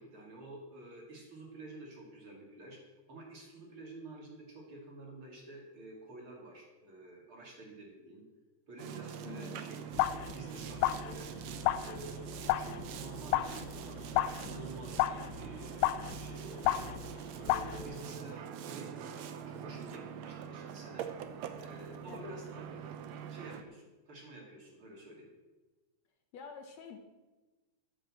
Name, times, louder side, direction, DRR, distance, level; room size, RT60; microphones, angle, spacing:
voice 1, 0.0-2.8 3.1-8.2 8.7-11.3 11.8-16.9 17.4-21.1 21.6-25.3, right 2 dB, 45° right, -1 dB, 3.1 m, -50 dB
Boat Water vehicle, 8.8-23.6, right 8 dB, 70° right, 1.9 m, -44 dB
voice 2, 9.2-9.6 22.1-22.2 26.3-27.0, left 6 dB, 70° left, 5 dB, 2.0 m, -47 dB
sound 1, 10.0-10.4 10.7-17.2 17.5-17.9, left 14 dB, 85° left, 2.0 m, -33 dB
10.5 x 8.6 x 7.6 m, 1.1 s
omnidirectional pair, 3.5 m